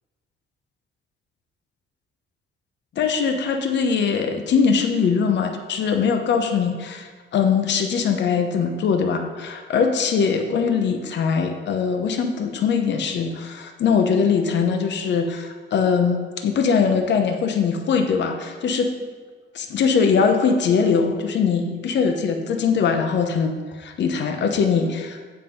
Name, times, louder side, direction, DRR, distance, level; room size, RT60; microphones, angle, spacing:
voice 1, 3.0-18.9 19.5-25.2, left 6 dB, 65° left, 5 dB, 0.8 m, -21 dB
7.7 x 5.6 x 5.3 m, 1.4 s
cardioid pair, 90°, 20 cm